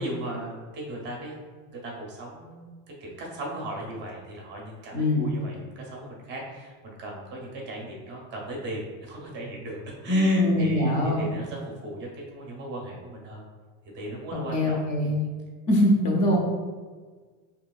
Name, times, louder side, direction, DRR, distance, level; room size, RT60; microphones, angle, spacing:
voice 1, 0.0-1.3 1.8-2.7 3.0-13.4 13.9-15.2, right 1 dB, 25° right, -2 dB, 0.6 m, -37 dB
voice 2, 4.9-5.3 10.1-11.3 14.3-15.2 15.7-16.4, left 1 dB, 40° left, 0 dB, 0.7 m, -22 dB
5.4 x 2.9 x 2.3 m, 1.5 s
cardioid pair, 170°, 41 cm